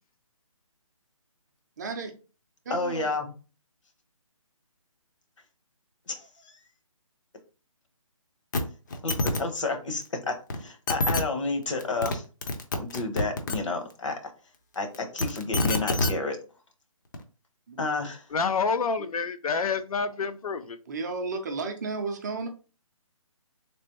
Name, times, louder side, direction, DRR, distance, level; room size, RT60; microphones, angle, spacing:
voice 1, 1.8-2.1 2.6-3.1 17.7-17.8 20.6-22.5, right 4 dB, 30° right, 0.6 m, -33 dB
voice 2, 2.7-3.3 6.1-6.5 9.0-12.2 12.9-14.2 14.7-16.4 17.8-18.2, left 3 dB, 60° left, 1.0 m, -30 dB
sound 1, 8.5-8.6 8.9-9.4 10.5-10.6 10.9-11.2 11.8-12.1 12.4-13.6 14.9-16.1 17.1-17.2, left 2 dB, 35° left, 0.5 m, -26 dB
voice 3, 18.3-20.8, left 5 dB, 85° left, 0.5 m, -28 dB
3.3 x 2.9 x 2.9 m
hypercardioid pair, 160°, 18 cm